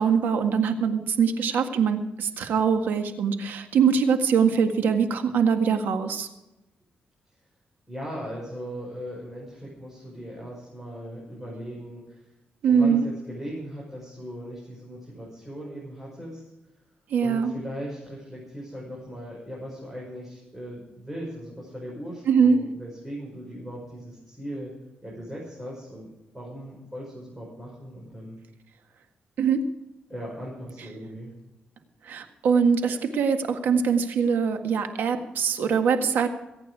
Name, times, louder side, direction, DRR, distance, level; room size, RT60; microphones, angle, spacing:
voice 1, 0.0-6.3 12.6-13.1 17.1-17.5 22.3-22.6 29.4-29.6 32.1-36.3, right 6 dB, 85° right, 7 dB, 1.7 m, -23 dB
voice 2, 7.9-12.2 12.7-16.4 17.2-24.7 25.0-26.1 26.3-28.4 30.1-31.3, equal, 5° right, -5 dB, 5.7 m, -38 dB
22.0 x 9.1 x 4.8 m, 0.97 s
cardioid pair, 105°, 3 cm